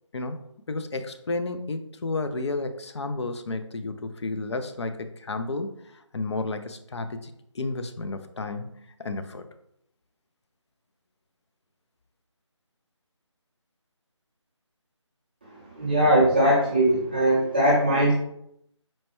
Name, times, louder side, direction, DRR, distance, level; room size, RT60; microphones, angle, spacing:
voice 1, 0.7-5.7 6.1-9.4, left 3 dB, 60° left, 9 dB, 0.4 m, -32 dB
voice 2, 15.8-18.1, right 1 dB, 20° right, -7 dB, 0.4 m, -20 dB
4.3 x 2.2 x 2.9 m, 0.77 s
figure-of-eight pair, 160°, 16 cm